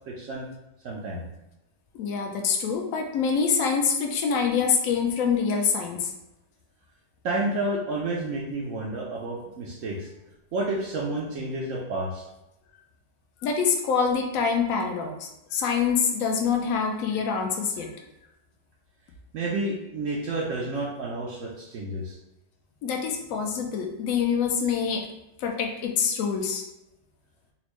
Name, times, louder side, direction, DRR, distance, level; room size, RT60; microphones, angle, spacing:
voice 1, 0.1-0.5 0.8-1.3 7.2-10.1 10.5-12.2 19.3-22.2, right 2 dB, 85° right, -3 dB, 0.7 m, -30 dB
voice 2, 1.9-6.1 13.4-17.9 22.8-25.0 25.4-26.6, left 6 dB, 75° left, 3 dB, 0.7 m, -25 dB
4.3 x 2.0 x 3.0 m, 0.90 s
omnidirectional pair, 1.9 m